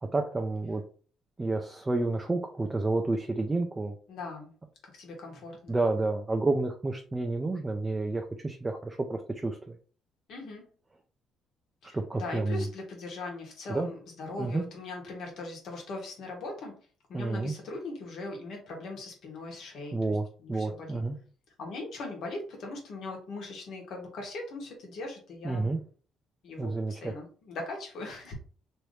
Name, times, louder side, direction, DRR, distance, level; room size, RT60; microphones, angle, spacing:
voice 1, 0.0-0.8 1.4-4.0 5.7-9.8 11.9-12.7 13.7-13.9 14.4-14.7 17.1-17.5 19.9-21.2 25.4-25.8 26.6-27.1, right 2 dB, 20° right, 4 dB, 0.4 m, -30 dB
voice 2, 4.1-4.5 4.9-5.8 10.3-10.6 11.8-16.7 17.1-21.0 21.6-25.8 26.4-28.3, left 2 dB, 70° left, 1 dB, 1.3 m, -40 dB
3.0 x 2.6 x 3.2 m, 0.41 s
cardioid pair, 100°, 0 cm